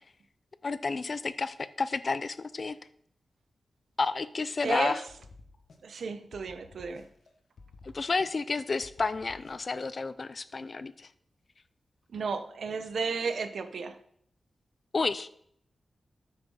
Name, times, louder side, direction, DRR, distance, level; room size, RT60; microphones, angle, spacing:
voice 1, 0.6-2.8 4.0-5.0 7.8-11.1 14.9-15.3, left 4 dB, 40° left, 15 dB, 0.5 m, -31 dB
voice 2, 4.6-5.0 5.8-7.1 12.1-14.0, right 5 dB, 70° right, 9 dB, 0.9 m, -33 dB
sound 1, 5.1-6.0 6.3-7.3 7.6-8.5 8.8-9.8, left 3 dB, 65° left, 1.4 m, -53 dB
9.2 x 6.1 x 5.5 m, 0.67 s
wide cardioid pair, 125°, 0 cm